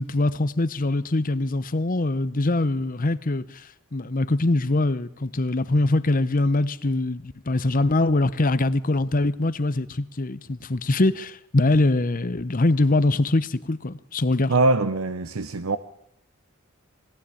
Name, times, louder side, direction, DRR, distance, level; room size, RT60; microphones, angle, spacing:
voice 1, 0.0-3.4 3.9-14.5, left 2 dB, 40° left, 0.8 m, -23 dB
voice 2, 14.5-15.8, right 2 dB, 80° right, 0.8 m, -22 dB
21.5 x 17.0 x 8.6 m
head